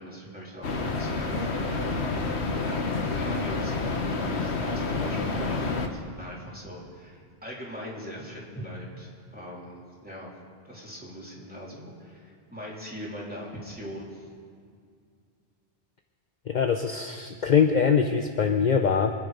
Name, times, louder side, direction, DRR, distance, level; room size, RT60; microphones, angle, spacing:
voice 1, 0.0-10.3 10.6-14.3, equal, 10° right, -5 dB, 3.4 m, -41 dB
sound 1, 0.6-5.9, left 3 dB, 85° left, 1.4 m, -29 dB
voice 2, 16.5-19.1, left 6 dB, 50° left, 5 dB, 0.7 m, -23 dB
25.0 x 9.9 x 5.2 m, 2.2 s
omnidirectional pair, 1.1 m